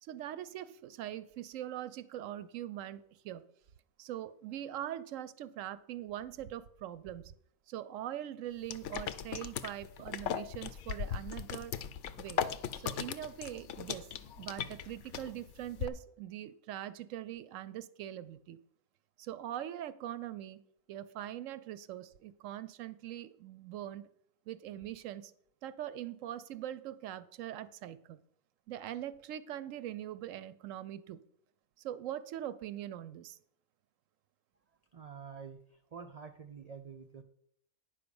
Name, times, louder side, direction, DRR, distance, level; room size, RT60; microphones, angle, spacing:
voice 1, 0.0-3.4 4.0-7.3 7.7-11.8 12.2-12.4 12.7-14.1 14.3-18.6 19.2-20.6 20.9-24.1 24.5-25.3 25.6-28.2 28.7-31.2 31.8-33.4, right 12 dB, 70° right, 15 dB, 0.9 m, -42 dB
sound 1, 8.7-15.8, left 8 dB, 65° left, 0.8 m, -40 dB
sound 2, 10.1-15.3 15.6-15.9, left 7 dB, 85° left, 0.4 m, -41 dB
voice 2, 34.9-37.2, right 6 dB, 85° right, 7 dB, 0.3 m, -48 dB
9.7 x 5.0 x 6.9 m, 0.70 s
omnidirectional pair, 1.5 m